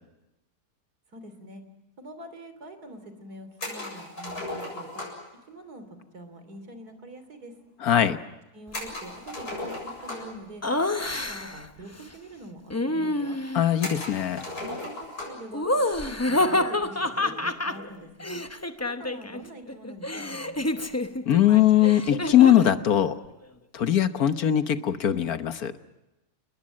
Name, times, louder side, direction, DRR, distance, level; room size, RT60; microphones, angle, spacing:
voice 1, 1.1-1.6 2.0-5.1 5.5-5.9 6.1-7.5 8.5-10.6 11.0-13.4 14.6-15.7 16.0-18.4 18.8-20.7, right 1 dB, 80° right, 9 dB, 3.8 m, -44 dB
sound 1, 3.6-5.3 8.7-10.4 11.5-11.6 11.9-12.0 12.8-12.9 13.8-15.5, left 2 dB, 90° left, 8.1 m, -36 dB
voice 2, 7.8-8.2 13.5-14.5 21.3-23.2 23.7-25.7, left 11 dB, 70° left, 10 dB, 1.6 m, -21 dB
Laughter, 10.6-11.7 12.7-13.7 15.5-19.4 19.7-22.8, left 1 dB, 15° left, 0.6 m, -28 dB
30.0 x 20.5 x 7.4 m, 0.97 s
omnidirectional pair, 1.6 m